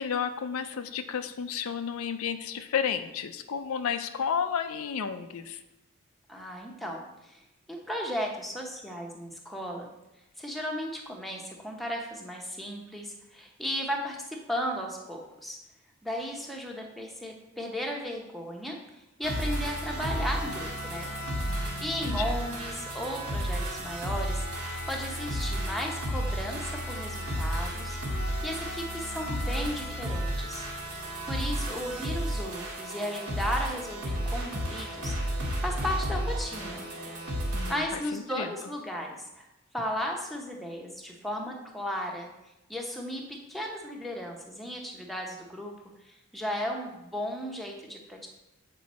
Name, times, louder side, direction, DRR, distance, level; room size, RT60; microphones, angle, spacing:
voice 1, 0.0-5.6 21.5-22.4 37.5-38.5, left 7 dB, 75° left, 9 dB, 0.5 m, -32 dB
voice 2, 6.3-7.4 7.7-9.9 10.4-15.6 16.0-18.8 19.2-21.1 21.8-30.7 31.3-36.8 37.7-39.5 39.7-42.3 42.7-43.2 43.5-45.7 46.0-48.3, equal, ahead, 0 dB, 0.8 m, -35 dB
sound 1, 19.2-37.7, equal, 90° right, 1.8 m, -32 dB
7.6 x 5.2 x 4.2 m, 0.97 s
head